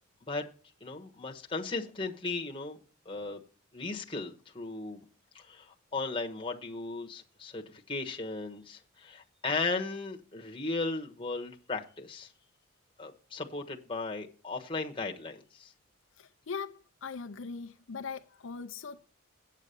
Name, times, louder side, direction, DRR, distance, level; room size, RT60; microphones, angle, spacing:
voice 1, 0.8-2.8 3.0-3.4 3.7-5.0 5.3-12.3 13.0-15.7, left 3 dB, 25° left, 1.2 m, -36 dB
voice 2, 16.2-19.1, left 5 dB, 65° left, 0.6 m, -40 dB
8.3 x 8.3 x 6.8 m
head